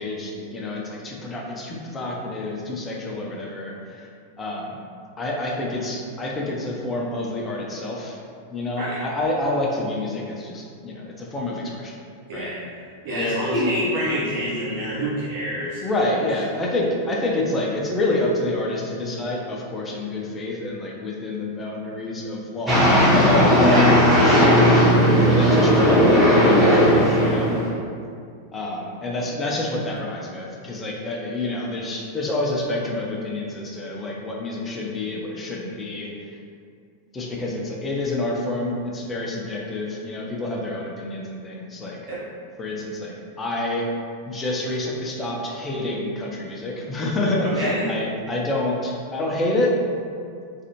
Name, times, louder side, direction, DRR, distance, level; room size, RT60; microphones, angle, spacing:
voice 1, 0.0-4.1 4.4-4.8 5.2-8.2 8.5-11.9 12.3-12.5 13.1-13.7 15.8-23.8 24.4-24.8 25.2-27.6 28.5-36.1 37.1-42.0 42.6-43.9 44.3-49.7, left 2 dB, 20° left, -3 dB, 0.5 m, -27 dB
voice 2, 12.3-12.6 13.0-15.8 23.7-24.5 42.1-42.2 47.4-47.9, equal, 50° right, -9 dB, 1.0 m, -26 dB
sound 1, 22.7-27.7, equal, 10° right, 0.8 m, -16 dB
2.5 x 2.4 x 2.9 m, 2.3 s
figure-of-eight pair, 90°, 0 cm